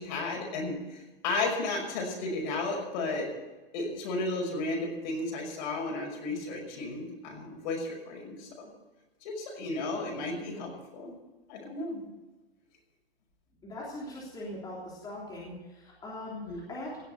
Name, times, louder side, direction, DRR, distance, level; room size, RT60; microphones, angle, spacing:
voice 1, 0.0-3.3 3.7-8.7 9.2-11.2 11.5-12.1 16.4-16.6, left 2 dB, 50° left, 1 dB, 5.9 m, -34 dB
voice 2, 13.6-17.0, left 1 dB, 15° left, -6 dB, 3.4 m, -41 dB
17.5 x 7.2 x 8.1 m, 1.1 s
hypercardioid pair, 155°, 30 cm